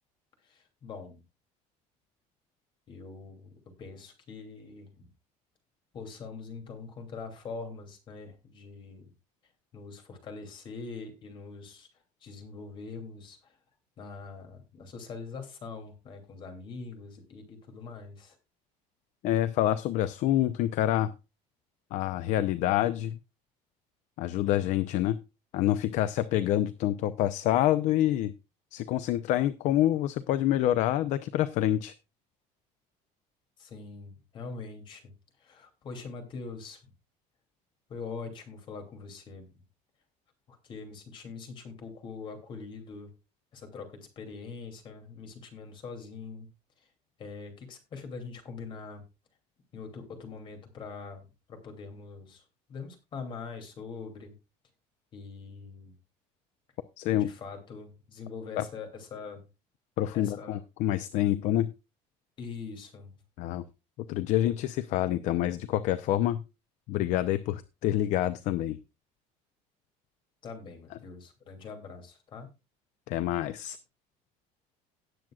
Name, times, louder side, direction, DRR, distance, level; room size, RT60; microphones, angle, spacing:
voice 1, 0.4-1.2 2.9-5.1 5.9-9.1 9.7-11.9 12.2-13.6 14.0-18.4 33.6-35.1 35.4-36.9 37.9-39.6 40.5-43.1 43.5-46.5 46.8-46.9 47.2-49.0 49.7-52.4 52.7-54.3 55.1-56.0 57.1-59.5 60.1-60.6 62.4-63.2 70.4-72.5, left 4 dB, 35° left, 5 dB, 2.8 m, -43 dB
voice 2, 19.2-21.1 21.9-23.2 24.2-25.2 25.5-28.3 28.7-31.9 57.0-57.3 58.6-58.7 60.0-61.7 63.4-63.6 64.1-66.4 66.9-68.8 73.1-73.8, left 13 dB, 55° left, 13 dB, 0.6 m, -27 dB
18.0 x 7.6 x 2.4 m, 0.27 s
cardioid pair, 180°, 14 cm